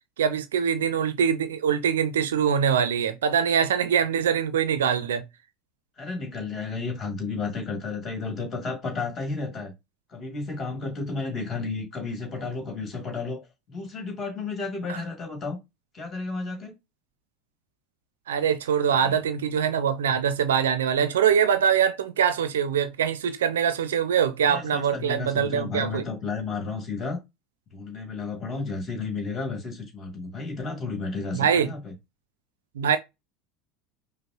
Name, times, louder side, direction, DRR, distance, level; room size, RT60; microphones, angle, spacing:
voice 1, 0.2-5.2 14.9-15.0 18.3-26.0 31.3-31.7 32.8-33.0, right 8 dB, 75° right, 0.4 m, -23 dB
voice 2, 6.0-9.7 10.1-15.6 15.9-16.7 18.9-19.1 24.4-27.2 27.7-31.9, left 4 dB, 30° left, 1.9 m, -32 dB
5.2 x 2.0 x 2.8 m
figure-of-eight pair, 75°, 0 cm